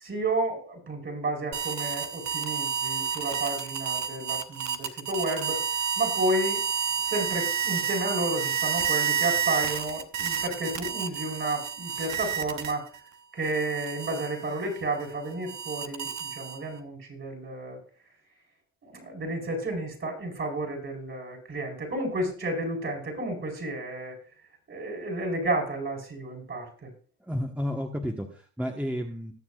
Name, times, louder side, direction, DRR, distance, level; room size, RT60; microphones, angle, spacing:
voice 1, 0.0-5.6 6.0-6.6 7.1-12.9 13.3-17.8 18.8-24.1 24.7-26.9, right 2 dB, 40° right, 1 dB, 4.5 m, -31 dB
sound 1, 1.5-13.0 13.4-16.8, right 7 dB, 65° right, 1.0 m, -30 dB
voice 2, 27.2-29.3, equal, 5° right, 1 dB, 1.2 m, -32 dB
19.5 x 7.1 x 2.4 m, 0.40 s
cardioid pair, 90°, 30 cm